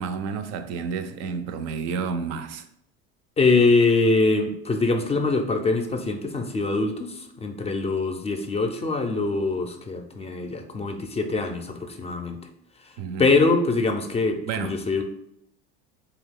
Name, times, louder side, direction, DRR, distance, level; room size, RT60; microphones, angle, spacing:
voice 1, 0.0-2.7 13.0-13.3 14.5-14.7, right 5 dB, 60° right, 0.4 m, -30 dB
voice 2, 3.4-12.4 13.2-15.0, left 3 dB, 20° left, 0.4 m, -23 dB
2.7 x 2.3 x 3.5 m
hypercardioid pair, 85°, 30 cm